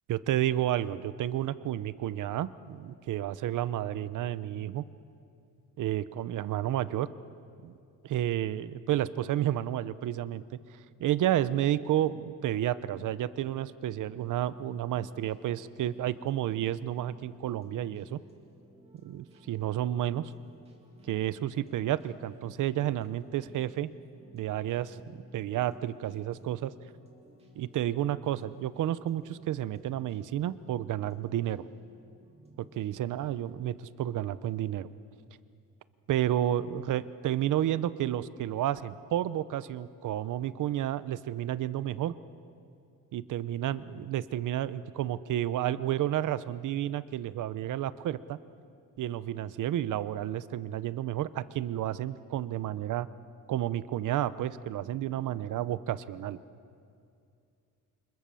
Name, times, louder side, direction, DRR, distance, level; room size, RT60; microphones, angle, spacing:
voice 1, 0.1-4.8 5.8-7.1 7.6-7.7 8.0-10.4 11.0-18.2 19.0-20.3 21.0-23.9 24.3-25.0 25.3-26.7 27.6-31.7 32.6-34.9 36.1-42.1 43.1-48.4 49.0-53.1 53.5-56.4, right 12 dB, 60° right, 15 dB, 0.8 m, -31 dB
sound 1, 14.2-33.1, right 1 dB, 15° right, 2.6 m, -56 dB
28.5 x 26.5 x 7.0 m, 2.4 s
cardioid pair, 180°, 35 cm